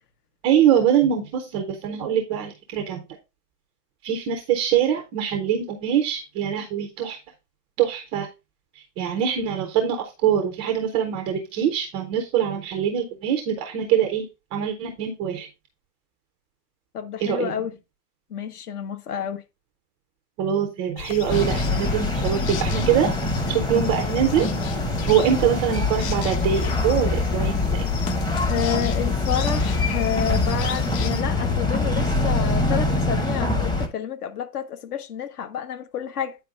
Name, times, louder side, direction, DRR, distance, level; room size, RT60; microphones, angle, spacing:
voice 1, 0.4-3.0 4.0-7.2 7.8-8.3 8.8-15.5 17.2-17.6 20.4-23.1 23.5-24.5 25.1-27.9 29.1-29.2, right 9 dB, 15° right, 0.4 m, -23 dB
voice 2, 16.9-17.7 18.3-19.4 28.5-36.4, left 8 dB, 65° left, 1.5 m, -29 dB
sound 1, 21.0-31.2, left 8 dB, 45° left, 0.8 m, -33 dB
sound 2, 21.3-33.9, left 2 dB, 10° left, 0.8 m, -24 dB
9.3 x 4.6 x 3.5 m
hypercardioid pair, 125°, 49 cm